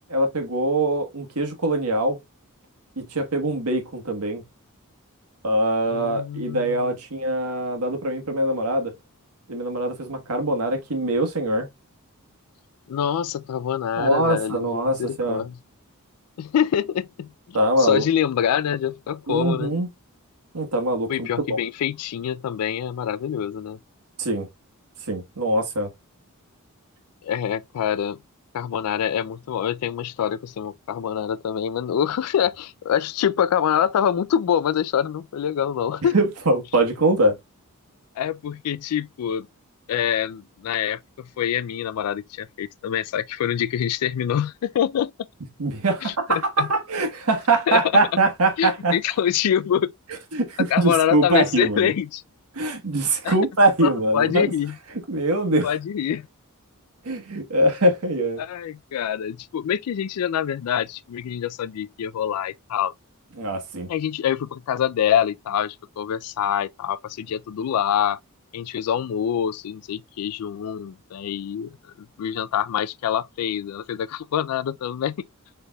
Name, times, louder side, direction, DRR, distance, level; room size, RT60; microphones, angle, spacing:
voice 1, 0.0-2.2 3.0-4.4 5.4-8.9 9.5-11.7 14.0-15.4 17.5-18.0 19.3-19.9 20.5-21.3 24.2-24.5 25.0-25.9 36.1-37.4 45.6-49.0 50.3-51.9 52.5-54.5 55.1-55.7 57.0-58.4 63.4-63.9, right 1 dB, 90° right, 1.3 m, -23 dB
voice 2, 5.9-7.0 12.9-15.6 16.4-19.7 21.1-23.8 27.2-28.2 28.5-36.1 38.2-39.5 39.9-45.1 46.0-46.7 47.7-47.8 48.6-49.9 50.7-52.2 53.2-53.3 53.8-54.8 55.6-56.3 58.4-62.9 63.9-68.2 68.5-75.1, left 9 dB, 85° left, 0.3 m, -25 dB
6.5 x 3.3 x 2.2 m
head